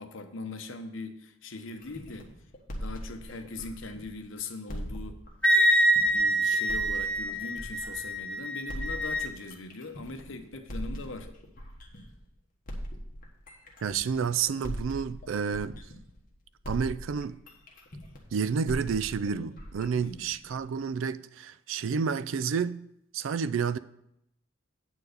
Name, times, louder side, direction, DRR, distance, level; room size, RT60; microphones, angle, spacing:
voice 1, 0.0-2.3 2.8-5.2 5.5-5.6 6.0-11.3 20.0-20.3, left 3 dB, 70° left, 0.9 m, -41 dB
sound 1, 1.8-4.2 4.7-8.2 8.7-12.2 12.7-16.3 16.6-20.7, equal, 45° left, 1.4 m, -41 dB
Wind instrument woodwind instrument, 5.4-9.3, right 1 dB, 5° left, 0.8 m, -25 dB
voice 2, 13.8-15.8 16.7-17.4 18.3-22.8 23.1-23.8, right 6 dB, 75° right, 0.4 m, -30 dB
8.8 x 4.6 x 6.5 m
head